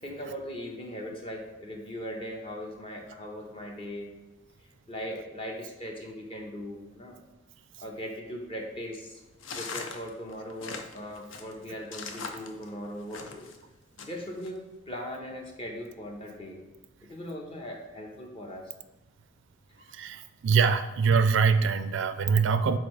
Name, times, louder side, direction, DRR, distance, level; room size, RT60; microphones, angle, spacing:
voice 1, 0.0-4.1 4.9-7.2 7.8-9.2 9.5-13.5 14.0-14.6 14.9-16.6 17.1-18.6 19.8-19.9, equal, 25° left, 0 dB, 1.0 m, -39 dB
sound 1, 9.4-13.6 14.0-14.5, left 4 dB, 65° left, 0.6 m, -40 dB
voice 2, 19.9-22.8, right 5 dB, 60° right, 10 dB, 0.3 m, -24 dB
6.7 x 4.4 x 3.3 m, 1.1 s
head